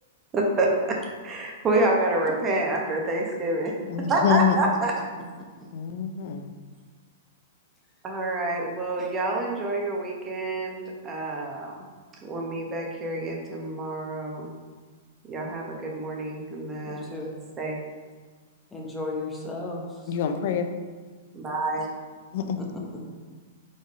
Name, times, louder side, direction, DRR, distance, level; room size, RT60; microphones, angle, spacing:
voice 1, 0.3-3.7 4.1-4.9 8.0-11.8 12.2-14.5 15.2-17.1 17.6-17.8 21.3-21.9, right 2 dB, 20° right, 0 dB, 1.0 m, -27 dB
voice 2, 3.9-4.6 5.7-6.5 20.1-20.7 22.3-22.6, left 8 dB, 55° left, 7 dB, 0.6 m, -26 dB
voice 3, 16.8-17.3 18.7-20.2 22.4-23.1, left 2 dB, 10° left, -2 dB, 0.9 m, -35 dB
5.2 x 3.8 x 5.3 m, 1.4 s
hypercardioid pair, 155°, 0 cm